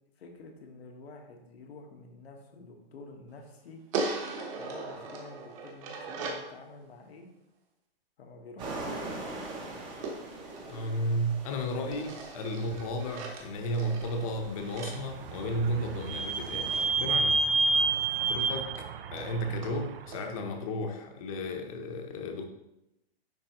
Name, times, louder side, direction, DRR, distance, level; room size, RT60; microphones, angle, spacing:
voice 1, 0.2-3.8 4.6-7.3 8.2-8.9 17.6-18.1, left 3 dB, 85° left, 2 dB, 1.4 m, -49 dB
sound 1, 3.9-6.5 10.0-11.4 11.9-16.0 17.9-18.0 18.3-18.4 18.8-18.9 19.2-19.3 19.6-19.8 20.1-20.2, right 3 dB, 35° right, 1.0 m, -39 dB
sound 2, 8.6-16.9, right 2 dB, 15° right, 0.7 m, -44 dB
voice 2, 10.6-17.4 18.2-18.7 19.1-22.4, equal, 35° left, 4 dB, 0.8 m, -33 dB
Vehicle / Squeak, 14.7-20.3, right 3 dB, 65° right, 0.6 m, -30 dB
10.0 x 3.4 x 3.0 m, 0.88 s
hypercardioid pair, 165°, 30 cm